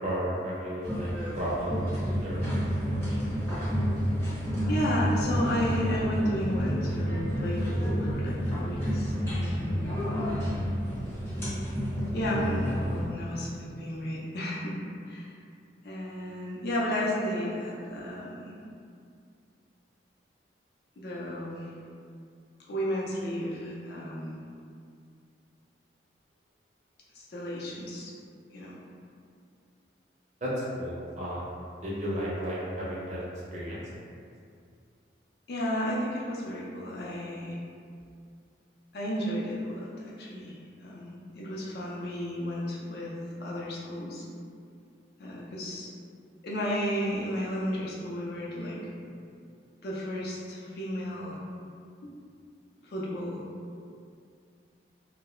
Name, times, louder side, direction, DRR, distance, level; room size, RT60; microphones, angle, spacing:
voice 1, 0.0-1.1 1.4-1.8 2.2-2.4 30.4-31.5 31.8-33.2 33.5-33.8, equal, 40° right, -7 dB, 0.5 m, -33 dB
sound 1, 0.8-13.0, equal, 15° left, 0.6 m, -30 dB
voice 2, 4.7-10.0 12.1-14.8 15.1-15.3 15.8-18.5 21.0-21.7 22.7-24.4 27.1-28.1 28.5-28.7 35.5-37.6 38.9-40.6 40.8-44.3 45.2-45.9 46.4-48.8 49.8-51.4 52.8-53.4, equal, 60° left, -5 dB, 0.4 m, -33 dB
2.3 x 2.0 x 2.9 m, 2.3 s
head